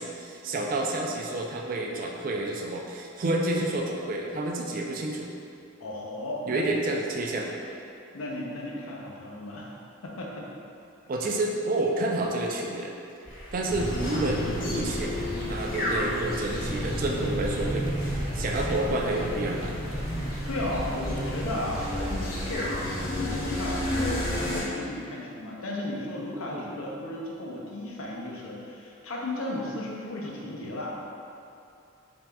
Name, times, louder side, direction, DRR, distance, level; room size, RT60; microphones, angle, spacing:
voice 1, 0.0-5.3 6.5-7.5 11.1-12.9 13.5-19.8 26.5-26.7, right 2 dB, 40° right, 0 dB, 0.3 m, -29 dB
voice 2, 5.8-6.7 8.1-9.7 10.0-10.5 20.5-30.9, left 1 dB, 85° left, -3 dB, 0.6 m, -35 dB
sound 1, 13.3-22.9, equal, 5° left, 1.2 m, -40 dB
sound 2, 13.7-24.6, equal, 45° left, 0.8 m, -31 dB
4.1 x 3.5 x 2.2 m, 2.6 s
head